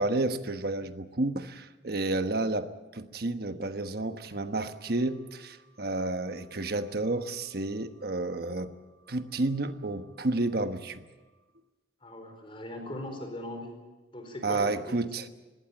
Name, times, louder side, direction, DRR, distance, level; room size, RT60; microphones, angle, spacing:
voice 1, 0.0-8.7 9.1-11.1 14.4-15.2, right 2 dB, 55° right, 9 dB, 1.2 m, -31 dB
voice 2, 12.0-13.8 14.1-15.0, left 1 dB, 30° left, 5 dB, 4.6 m, -39 dB
21.0 x 17.0 x 9.0 m, 1.2 s
head